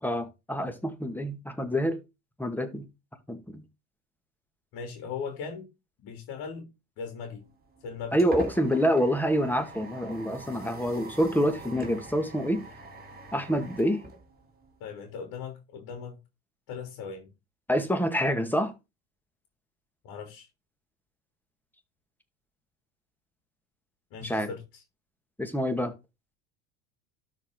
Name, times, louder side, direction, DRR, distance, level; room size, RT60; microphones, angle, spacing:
voice 1, 0.0-2.0 2.4-2.9 3.3-3.6 8.1-12.6 13.3-14.0 17.7-18.7 24.2-24.5 25.4-25.9, equal, 5° left, 2.1 m, -27 dB
voice 2, 4.7-5.7 6.0-6.7 7.0-7.4 7.8-8.3 14.8-16.2 16.7-17.3 20.0-20.5 24.1-24.8, left 6 dB, 55° left, 3.4 m, -38 dB
sound 1, 7.5-14.9, right 2 dB, 20° right, 3.8 m, -43 dB
12.5 x 5.1 x 3.9 m
hypercardioid pair, 80°, 42 cm